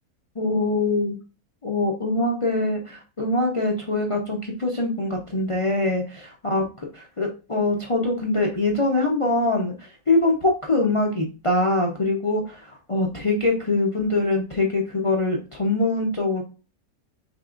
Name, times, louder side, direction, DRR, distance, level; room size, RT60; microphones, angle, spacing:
voice 1, 0.4-1.1 1.6-16.4, left 2 dB, 45° left, 0 dB, 0.4 m, -23 dB
5.3 x 3.3 x 2.4 m, 0.33 s
omnidirectional pair, 1.6 m